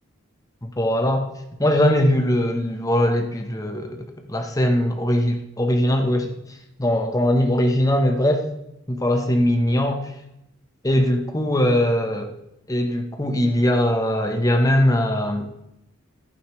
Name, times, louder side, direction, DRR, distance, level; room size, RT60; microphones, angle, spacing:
voice 1, 0.6-1.3 1.6-6.4 6.8-8.4 8.9-10.1 10.8-12.3 12.7-15.5, left 1 dB, 15° left, 4 dB, 1.0 m, -21 dB
11.0 x 9.2 x 3.2 m, 0.84 s
head